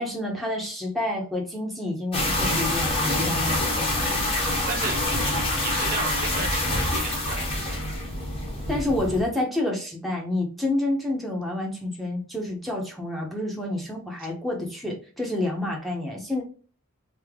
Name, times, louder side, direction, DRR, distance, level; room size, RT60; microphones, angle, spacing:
voice 1, 0.0-4.1 8.7-16.4, left 1 dB, ahead, -1 dB, 0.8 m, -29 dB
sound 1, 2.1-9.2, left 1 dB, 25° left, 1.0 m, -26 dB
voice 2, 4.7-7.9, right 4 dB, 40° right, 2 dB, 0.7 m, -35 dB
3.3 x 2.7 x 3.5 m, 0.38 s
head